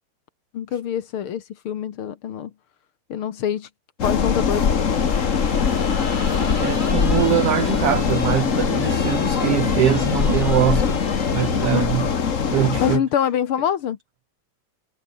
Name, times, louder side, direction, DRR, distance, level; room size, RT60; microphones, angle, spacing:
voice 1, 0.5-2.5 3.1-3.7 4.0-4.8 11.7-11.9 12.8-14.0, left 9 dB, 55° left, 1.6 m, -25 dB
sound 1, 4.0-13.0, left 6 dB, 75° left, 0.7 m, -21 dB
sound 2, 4.7-11.8, left 1 dB, 15° left, 4.5 m, -38 dB
voice 2, 6.6-11.0 11.3-12.1 12.5-13.0, right 12 dB, 85° right, 1.3 m, -22 dB
omnidirectional pair, 3.8 m